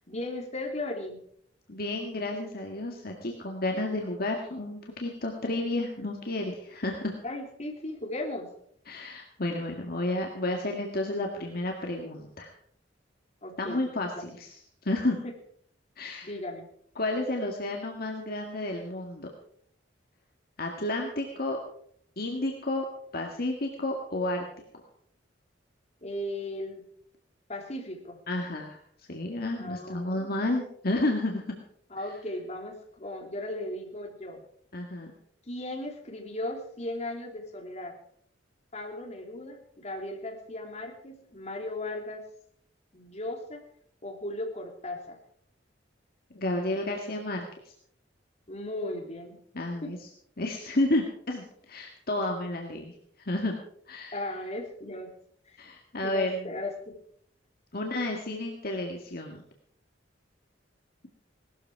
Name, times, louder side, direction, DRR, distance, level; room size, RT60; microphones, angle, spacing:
voice 1, 0.1-1.2 7.2-8.5 13.4-13.8 14.2-14.3 15.2-15.3 16.2-16.7 26.0-26.8 27.5-28.2 29.6-30.3 31.9-34.4 35.5-38.0 38.7-42.2 42.9-43.6 44.0-45.2 48.5-49.4 49.8-50.0 54.1-55.1 55.5-55.6 56.0-57.0, left 1 dB, 40° left, 2 dB, 3.0 m, -36 dB
voice 2, 1.7-7.2 8.9-12.5 13.6-15.2 16.0-16.3 17.0-19.3 20.6-21.6 22.2-22.9 23.1-24.4 24.7-24.8 28.3-28.8 29.1-31.6 34.7-35.1 46.3-47.5 49.5-50.0 50.4-52.9 53.2-53.6 53.9-54.1 55.6-56.5 57.7-59.4, left 1 dB, 55° left, 1 dB, 2.0 m, -31 dB
18.5 x 13.5 x 4.7 m, 0.65 s
head